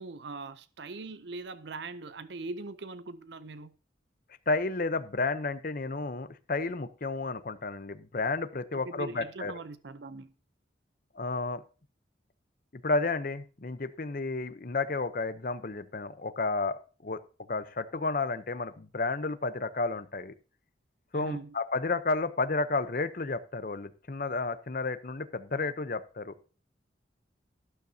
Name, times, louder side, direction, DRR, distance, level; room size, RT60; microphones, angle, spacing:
voice 1, 0.0-3.7 8.7-10.3 21.1-21.5, right 3 dB, 70° right, 0.6 m, -41 dB
voice 2, 4.5-9.5 11.1-11.6 12.7-17.2 17.5-20.3 21.1-26.4, left 3 dB, 50° left, 0.8 m, -32 dB
12.0 x 12.0 x 2.8 m
head